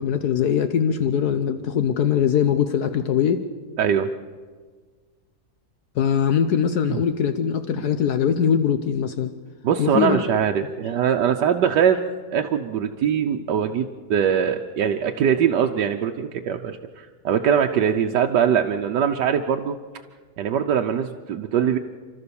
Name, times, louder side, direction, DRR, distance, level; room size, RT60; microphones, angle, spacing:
voice 1, 0.0-3.4 6.0-9.3 9.8-10.2, left 8 dB, 70° left, 9 dB, 1.4 m, -21 dB
voice 2, 3.8-4.1 6.9-7.0 9.6-12.0 12.3-19.8 20.4-21.8, right 8 dB, 90° right, 3 dB, 1.4 m, -22 dB
29.5 x 13.0 x 7.0 m, 1.5 s
omnidirectional pair, 1.8 m